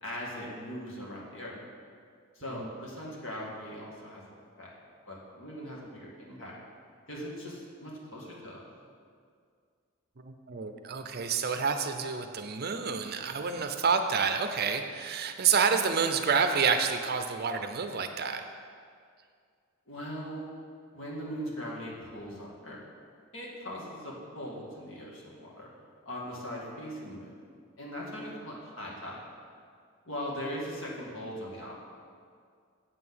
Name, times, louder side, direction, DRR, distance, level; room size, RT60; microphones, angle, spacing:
voice 1, 0.0-1.5 2.3-4.7 5.1-6.6 7.1-8.6 19.9-20.5 20.9-22.8 23.3-25.7 26.1-27.3 27.8-29.2 30.0-31.8, equal, 65° left, -4 dB, 2.1 m, -40 dB
voice 2, 10.2-18.4, right 6 dB, 50° right, 7 dB, 0.6 m, -28 dB
7.9 x 6.0 x 7.7 m, 2.2 s
head